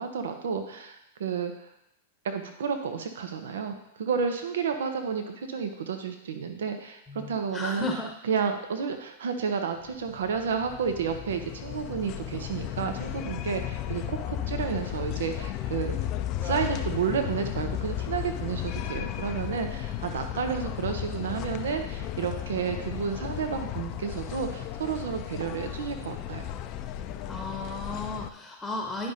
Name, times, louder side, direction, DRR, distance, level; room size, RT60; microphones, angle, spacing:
voice 1, 0.0-1.7 2.2-7.9 8.2-16.0 16.4-26.5, right 6 dB, 75° right, 6 dB, 0.7 m, -31 dB
voice 2, 7.1-8.1 27.3-29.1, left 2 dB, 10° left, 1 dB, 1.0 m, -34 dB
sound 1, 9.9-28.3, left 11 dB, 40° left, 0.5 m, -34 dB
10.5 x 5.1 x 2.7 m, 0.82 s
hypercardioid pair, 105°, 0 cm